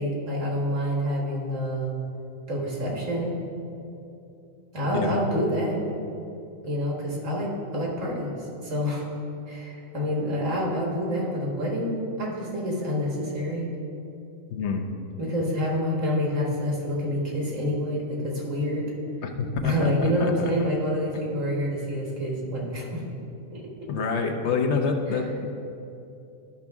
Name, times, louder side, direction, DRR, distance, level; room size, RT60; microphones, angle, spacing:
voice 1, 0.0-1.9 2.5-3.4 4.7-5.8 6.6-8.3 8.6-9.0 9.5-13.7 15.2-18.8 19.6-23.0 23.5-23.7, equal, 70° right, -2 dB, 1.9 m, -27 dB
voice 2, 14.5-14.9 19.2-20.5 23.9-25.5, left 4 dB, 60° left, 4 dB, 1.0 m, -27 dB
12.0 x 5.8 x 3.5 m, 2.7 s
omnidirectional pair, 1.4 m